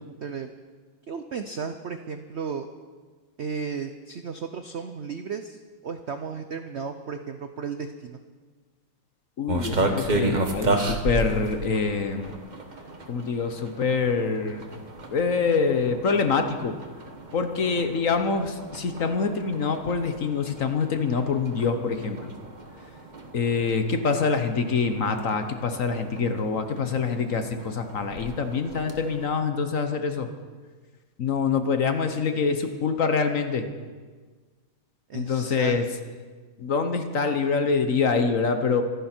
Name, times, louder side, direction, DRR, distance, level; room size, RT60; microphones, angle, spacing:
voice 1, 0.2-0.5 1.1-2.7 3.4-8.2 35.1-35.7, right 6 dB, 80° right, 8 dB, 0.6 m, -34 dB
voice 2, 9.4-12.3 13.1-14.6 15.1-16.8 17.3-22.3 23.3-30.3 31.2-33.7 35.1-35.9 36.6-38.8, left 5 dB, 50° left, 7 dB, 1.2 m, -25 dB
sound 1, 9.5-29.3, right 2 dB, 30° right, 1.1 m, -34 dB
25.5 x 11.0 x 4.5 m, 1.4 s
omnidirectional pair, 2.1 m